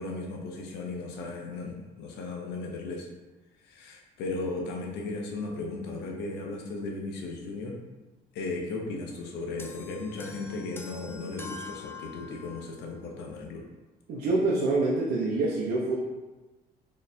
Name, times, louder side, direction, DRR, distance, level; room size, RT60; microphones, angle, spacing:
voice 1, 0.0-3.1 3.7-7.8 8.3-13.6, left 3 dB, 85° left, 1 dB, 0.7 m, -36 dB
sound 1, 9.6-12.8, left 4 dB, 15° left, 0.3 m, -44 dB
voice 2, 14.1-16.0, right 2 dB, 70° right, -4 dB, 0.7 m, -26 dB
4.0 x 3.1 x 2.6 m, 1.1 s
cardioid pair, 110°, 17 cm